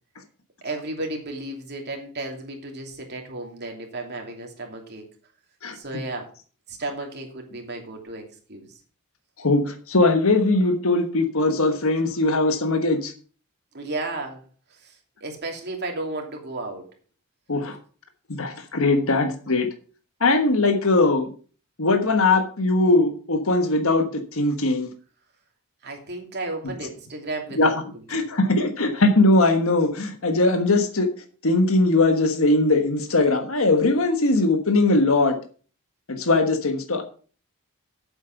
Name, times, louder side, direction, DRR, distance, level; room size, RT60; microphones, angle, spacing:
voice 1, 0.6-5.0 5.7-6.3 6.7-8.2 8.5-8.7 13.7-14.4 14.7-15.0 15.2-16.9 25.8-28.3, right 2 dB, 50° right, 2 dB, 2.8 m, -33 dB
voice 2, 9.4-13.1 17.5-17.8 18.3-19.7 20.2-21.3 21.8-24.9 26.6-26.7 27.5-27.7 28.1-31.1 31.4-35.4 36.1-37.0, left 2 dB, 65° left, 6 dB, 1.4 m, -20 dB
8.8 x 7.8 x 5.9 m, 0.40 s
head